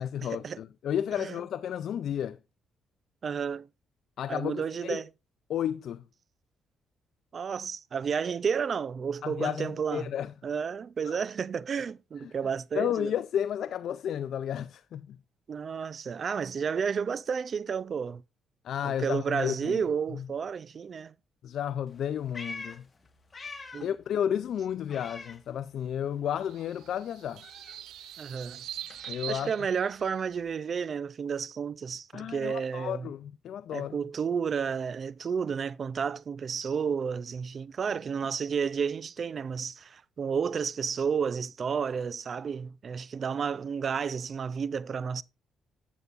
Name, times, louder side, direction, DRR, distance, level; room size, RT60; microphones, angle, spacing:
voice 1, 0.0-2.4 4.2-5.0 5.5-6.0 9.2-10.3 11.0-11.2 12.2-12.3 12.7-15.2 18.6-19.8 20.1-20.2 21.4-22.8 23.8-27.4 29.1-29.5 32.1-34.0, left 9 dB, 70° left, 0.4 m, -32 dB
voice 2, 3.2-3.7 4.3-5.1 7.3-10.1 10.4-13.1 15.5-18.2 18.8-21.1 23.7-23.9 28.2-28.6 29.3-33.1 33.7-45.2, right 6 dB, 45° right, 0.4 m, -31 dB
Meow, 21.9-24.0 24.3-26.0 26.3-30.5, left 3 dB, 30° left, 1.5 m, -47 dB
sound 1, 26.4-30.4, right 11 dB, 80° right, 0.7 m, -43 dB
11.0 x 8.1 x 2.4 m
cardioid pair, 90°, 0 cm